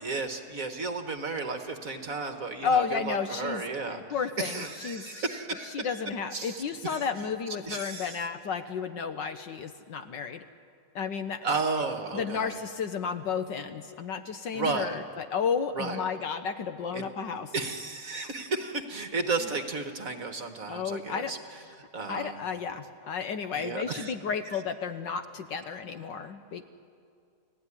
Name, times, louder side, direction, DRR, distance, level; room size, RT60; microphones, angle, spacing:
voice 1, 0.0-4.0 4.4-6.0 6.3-7.0 7.6-8.2 11.4-12.6 14.5-15.0 15.8-16.0 16.9-17.0 17.5-21.4 21.9-22.4 23.5-24.1, right 3 dB, 45° right, 7 dB, 1.5 m, -33 dB
voice 2, 2.6-5.2 5.6-10.4 10.9-11.4 12.1-17.5 20.7-21.3 22.1-26.6, left 6 dB, 65° left, 9 dB, 1.4 m, -32 dB
30.0 x 18.0 x 9.8 m, 2.3 s
omnidirectional pair, 2.4 m